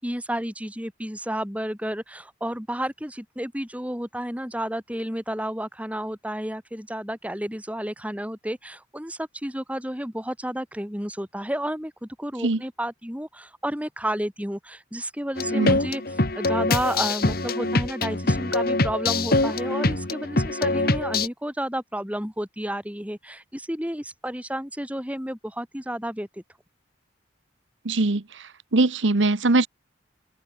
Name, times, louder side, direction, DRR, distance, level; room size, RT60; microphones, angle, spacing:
voice 1, 0.0-16.0 16.4-26.4, right 1 dB, 10° right, 7.3 m, -31 dB
sound 1, 15.4-21.3, left 2 dB, 55° left, 2.2 m, -24 dB
voice 2, 27.8-28.2 28.7-29.7, right 2 dB, 85° right, 1.2 m, -21 dB
open air
head